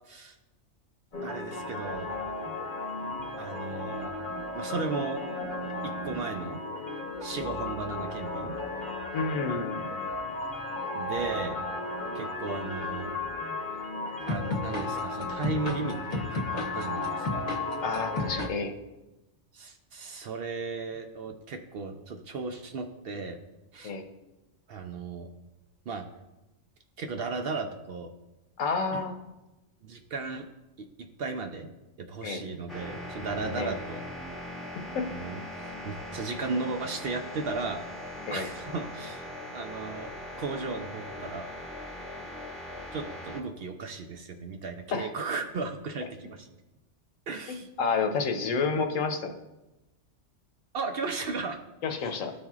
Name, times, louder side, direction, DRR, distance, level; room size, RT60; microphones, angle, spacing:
sound 1, 1.1-18.5, left 2 dB, 40° left, 0.9 m, -34 dB
voice 1, 1.2-2.1 3.4-4.1 4.5-5.2 5.8-6.6 7.2-8.6 11.0-11.6 12.1-13.1 14.3-17.5 19.5-23.4 23.7-23.9 24.7-25.3 25.9-26.1 27.0-28.1 28.9-29.0 29.8-30.5 30.8-30.9 31.2-31.7 32.0-34.0 35.1-39.3 39.5-40.1 40.4-41.5 42.9-46.5 47.3-47.7 50.7-51.6 51.9-52.2, right 4 dB, 60° right, 5 dB, 0.7 m, -35 dB
voice 2, 9.1-10.1 17.8-18.7 23.8-24.0 28.6-29.2 32.2-32.4 33.6-33.7 34.9-35.1 38.3-38.5 44.9-45.1 47.8-49.4 51.8-52.3, left 4 dB, 80° left, 6 dB, 1.1 m, -29 dB
sound 2, 32.7-43.4, left 1 dB, ahead, 0.8 m, -40 dB
13.0 x 4.3 x 2.4 m, 1.0 s
omnidirectional pair, 1.3 m